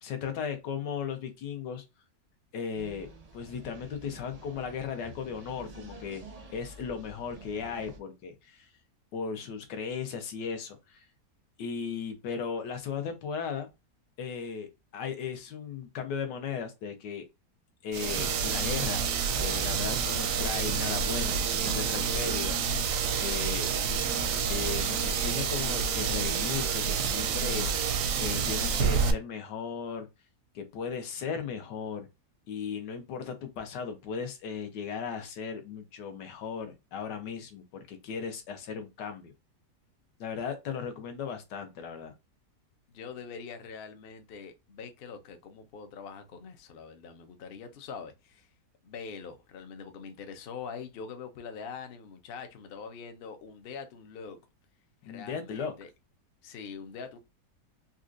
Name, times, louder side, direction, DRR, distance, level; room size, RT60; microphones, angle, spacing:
voice 1, 0.0-1.8 2.5-3.1 3.3-6.2 6.5-8.7 9.1-11.0 11.6-13.7 14.2-17.2 17.8-19.0 19.4-23.7 24.5-27.7 28.2-30.1 30.5-32.1 32.5-39.3 40.2-42.1 55.1-55.7, left 6 dB, 85° left, 1.4 m, -36 dB
sound 1, 2.7-8.0, right 2 dB, 40° right, 0.5 m, -49 dB
sound 2, 17.9-29.1, right 6 dB, 70° right, 0.8 m, -28 dB
voice 2, 42.9-48.5 48.8-54.4 55.0-55.9 56.4-57.2, left 5 dB, 70° left, 0.5 m, -43 dB
4.1 x 2.4 x 2.5 m
omnidirectional pair, 1.8 m